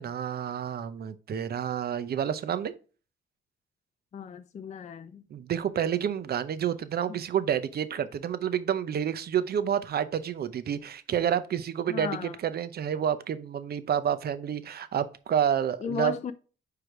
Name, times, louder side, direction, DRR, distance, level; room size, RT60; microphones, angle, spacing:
voice 1, 0.0-2.7 5.3-16.1, right 9 dB, 50° right, 0.7 m, -29 dB
voice 2, 4.1-5.2 7.1-7.2 11.9-12.4 15.8-16.3, left 7 dB, 35° left, 0.5 m, -35 dB
4.9 x 4.7 x 4.8 m
cardioid pair, 90°, 20 cm